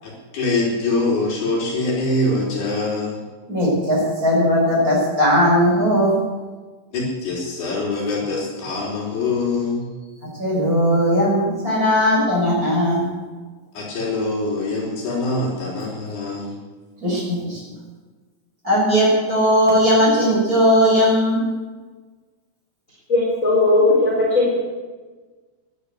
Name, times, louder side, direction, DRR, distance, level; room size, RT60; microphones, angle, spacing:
voice 1, 0.0-3.2 6.9-9.9 13.7-16.5, left 2 dB, 65° left, -3 dB, 5.3 m, -24 dB
voice 2, 3.5-6.1 10.4-13.1 17.0-17.6 18.6-21.4, equal, 20° right, -4 dB, 7.0 m, -18 dB
voice 3, 23.1-24.5, left 2 dB, 20° left, -6 dB, 3.9 m, -17 dB
15.0 x 11.5 x 8.2 m, 1.3 s
omnidirectional pair, 4.9 m